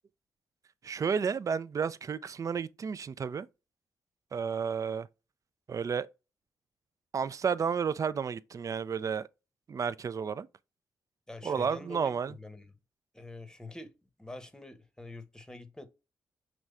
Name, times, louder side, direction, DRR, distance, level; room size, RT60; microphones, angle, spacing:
voice 1, 0.8-3.5 4.3-5.1 5.7-6.1 7.1-9.3 9.7-10.5 11.4-12.3, right 6 dB, 45° right, 0.3 m, -31 dB
voice 2, 11.3-12.7 13.1-15.9, left 2 dB, 10° left, 0.8 m, -46 dB
5.0 x 3.1 x 2.3 m
supercardioid pair, 45°, 8 cm